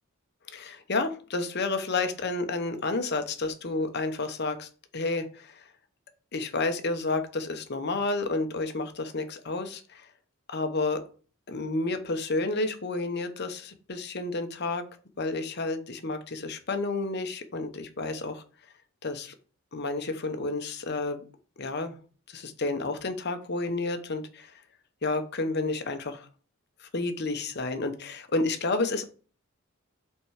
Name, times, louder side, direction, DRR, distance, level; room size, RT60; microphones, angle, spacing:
voice 1, 0.5-5.6 6.3-10.1 10.5-11.0 11.5-14.8 15.2-18.4 19.0-19.3 19.7-21.3 21.6-22.0 22.3-24.6 25.0-26.3 26.8-29.0, left 3 dB, 50° left, 8 dB, 1.0 m, -30 dB
5.8 x 4.6 x 4.9 m, 0.38 s
head